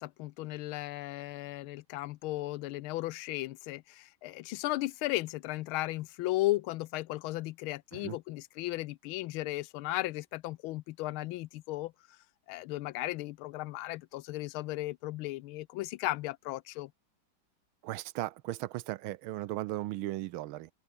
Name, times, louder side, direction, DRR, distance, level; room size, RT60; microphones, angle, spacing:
voice 1, 0.0-11.9 12.5-16.9, left 18 dB, 85° left, 1.4 m, -35 dB
voice 2, 17.8-20.7, right 16 dB, 90° right, 1.5 m, -37 dB
open air
omnidirectional pair, 2.2 m